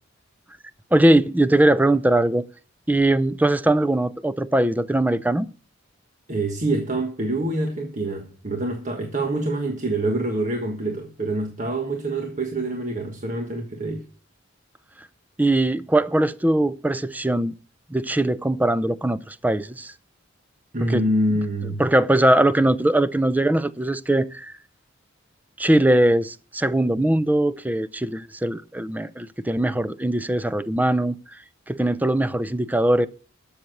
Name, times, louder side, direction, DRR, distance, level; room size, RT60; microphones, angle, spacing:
voice 1, 0.9-2.5 2.9-5.5 15.4-17.5 17.9-19.9 20.8-21.0 21.8-24.5 25.6-31.1 31.7-33.1, right 1 dB, 10° right, 0.5 m, -21 dB
voice 2, 6.3-14.0 20.7-21.8, right 1 dB, 40° right, 1.5 m, -26 dB
12.5 x 7.2 x 6.5 m
head